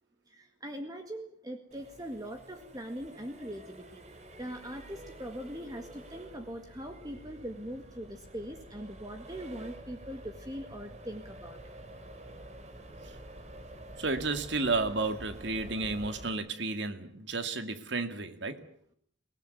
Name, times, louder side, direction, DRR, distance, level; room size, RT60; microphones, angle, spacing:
voice 1, 0.3-4.0 4.4-11.6, equal, 20° right, 1.8 m, -41 dB
Accelerating revving vroom, 1.7-16.3, right 1 dB, 35° right, 3.2 m, -49 dB
voice 2, 14.0-18.6, right 3 dB, 70° right, 2.4 m, -32 dB
24.5 x 18.5 x 9.6 m
head